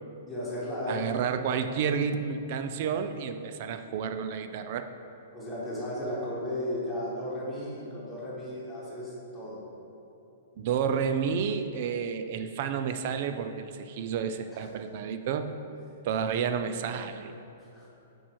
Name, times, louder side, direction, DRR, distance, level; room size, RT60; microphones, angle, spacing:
voice 1, 0.3-1.3 5.3-9.6 14.5-14.7 17.7-17.9, left 1 dB, 5° left, -9 dB, 1.3 m, -35 dB
voice 2, 0.9-4.9 10.6-15.5 16.0-17.3, right 7 dB, 35° right, 9 dB, 0.3 m, -30 dB
8.9 x 4.4 x 4.6 m, 2.9 s
hypercardioid pair, 175°, 0 cm